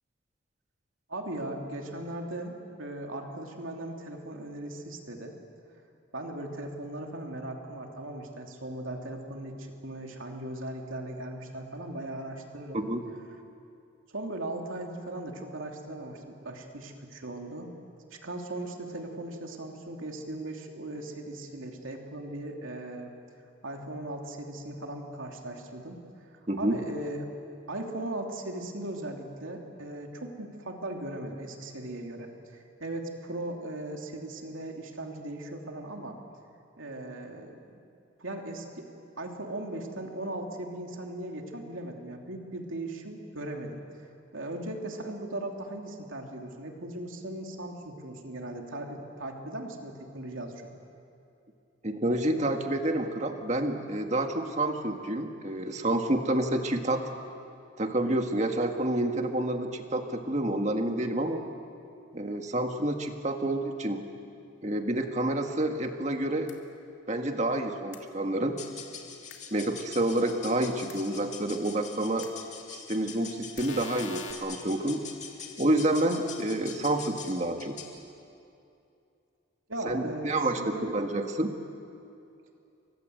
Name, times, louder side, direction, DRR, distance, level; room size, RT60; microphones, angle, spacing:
voice 1, 1.1-5.3 6.1-12.8 14.1-17.7 18.1-23.1 23.6-26.0 26.6-27.3 27.7-36.2 36.8-37.8 38.2-38.9 39.2-43.8 44.3-50.6 79.7-80.9, right 1 dB, 80° right, 2 dB, 2.9 m, -38 dB
voice 2, 26.5-26.8 51.8-57.0 57.8-61.4 62.1-64.1 64.6-66.5 67.1-68.6 69.5-72.3 72.7-75.0 75.6-77.8 79.9-81.6, right 1 dB, 35° right, 4 dB, 1.8 m, -28 dB
sound 1, 66.5-66.6 67.9-68.0 69.3-69.4 70.9-71.0 72.2-72.3 73.6-74.3, left 6 dB, 65° left, 2.6 m, -42 dB
sound 2, 68.5-78.0, left 6 dB, 35° left, 2.8 m, -44 dB
30.0 x 24.5 x 8.0 m, 2.6 s
head